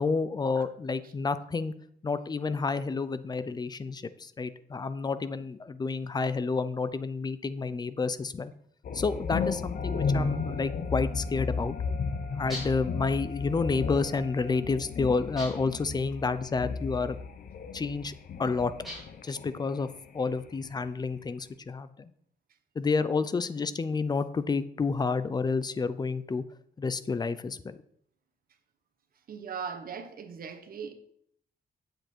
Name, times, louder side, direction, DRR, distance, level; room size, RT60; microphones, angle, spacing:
voice 1, 0.0-1.7 2.0-8.5 8.9-11.8 12.3-17.2 17.7-18.1 18.4-18.7 19.2-19.9 20.1-22.1 22.8-26.4 26.8-27.8, left 4 dB, 25° left, 0.5 m, -30 dB
sound 1, 8.8-19.7 20.0-21.2, left 5 dB, 60° left, 0.8 m, -34 dB
Wind instrument woodwind instrument, 9.7-15.0, right 2 dB, 90° left, 1.9 m, -49 dB
sound 2, 12.5-12.9 15.4-15.8 18.8-19.3, left 1 dB, ahead, 4.7 m, -41 dB
voice 2, 29.3-30.9, right 6 dB, 65° right, 1.2 m, -39 dB
8.7 x 7.8 x 4.5 m
wide cardioid pair, 140°, 16 cm